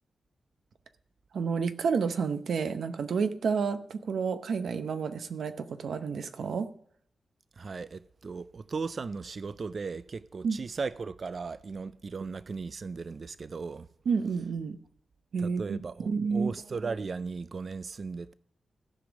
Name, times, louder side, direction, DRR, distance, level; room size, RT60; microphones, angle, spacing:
voice 1, 1.3-6.7 10.4-10.6 14.1-14.8 15.3-15.8 16.1-16.5, right 5 dB, 75° right, 0.8 m, -30 dB
voice 2, 7.6-13.9 15.4-18.3, right 4 dB, 50° right, 0.4 m, -37 dB
15.0 x 5.2 x 7.2 m
wide cardioid pair, 95°, 0 cm